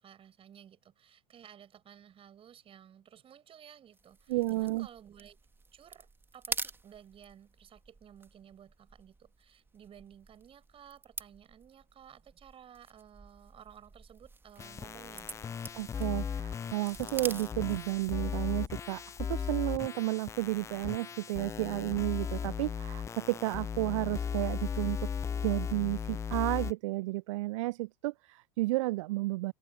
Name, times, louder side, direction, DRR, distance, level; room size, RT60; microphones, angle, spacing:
voice 1, 0.0-5.4 5.7-15.6, right 9 dB, 30° right, 5.2 m, -55 dB
sound 1, 3.9-18.3, right 3 dB, 10° right, 2.1 m, -46 dB
voice 2, 4.3-4.9 15.7-25.1 25.4-29.5, right 20 dB, 55° right, 0.8 m, -32 dB
sound 2, 14.6-26.7, left 7 dB, 15° left, 0.4 m, -37 dB
figure-of-eight pair, 80°, 20 cm